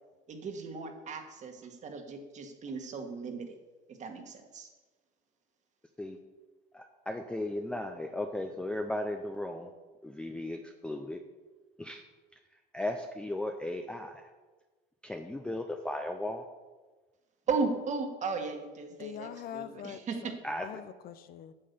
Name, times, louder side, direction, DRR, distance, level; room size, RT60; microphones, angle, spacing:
voice 1, 0.3-3.5 4.0-4.7 17.5-20.3, right 4 dB, 35° right, 5 dB, 1.6 m, -36 dB
voice 2, 6.7-9.7 10.0-11.2 11.8-12.0 12.7-14.2 15.0-16.4 20.4-20.7, left 1 dB, 5° left, 4 dB, 0.6 m, -36 dB
voice 3, 19.0-20.3 20.6-21.5, left 10 dB, 50° left, 13 dB, 0.6 m, -43 dB
8.8 x 7.6 x 6.8 m, 1.3 s
cardioid pair, 135°, 20 cm